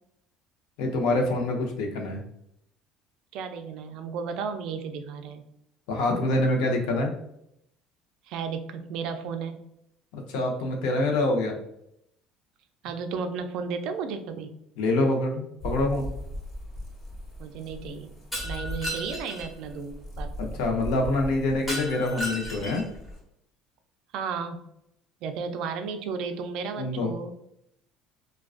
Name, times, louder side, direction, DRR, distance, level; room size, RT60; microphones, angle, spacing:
voice 1, 0.8-2.2 5.9-7.1 10.1-11.6 14.8-16.1 20.4-22.8 26.8-27.1, left 2 dB, 85° left, 1 dB, 0.6 m, -26 dB
voice 2, 3.3-5.4 8.3-9.7 12.8-14.5 17.4-18.1 18.4-20.6 24.1-24.6 25.2-27.3, right 5 dB, 60° right, 7 dB, 0.3 m, -34 dB
sound 1, 15.6-23.2, equal, 45° left, 1.1 m, -39 dB
Shatter, 18.3-19.5 21.7-23.0, equal, 10° left, 0.8 m, -34 dB
2.3 x 2.2 x 2.4 m, 0.76 s
cardioid pair, 155°, 0 cm